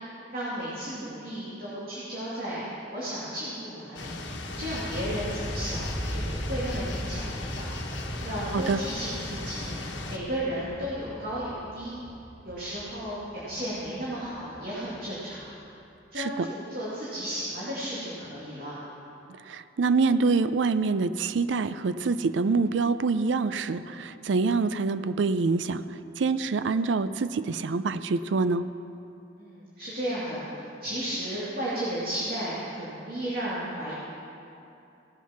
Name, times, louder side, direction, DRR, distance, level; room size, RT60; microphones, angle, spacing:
voice 1, 0.3-2.6 2.9-4.1 4.6-7.7 8.2-9.7 10.1-11.9 12.4-15.5 16.1-18.7 29.4-33.9, equal, 50° right, -9 dB, 2.4 m, -34 dB
sound 1, 4.0-10.2, left 2 dB, 70° left, 1.2 m, -37 dB
sound 2, 4.1-15.1, equal, 25° left, 2.2 m, -38 dB
voice 2, 16.2-16.5 19.5-25.8 26.2-28.7, right 4 dB, 75° right, 13 dB, 0.4 m, -26 dB
17.0 x 7.3 x 5.8 m, 2.7 s
head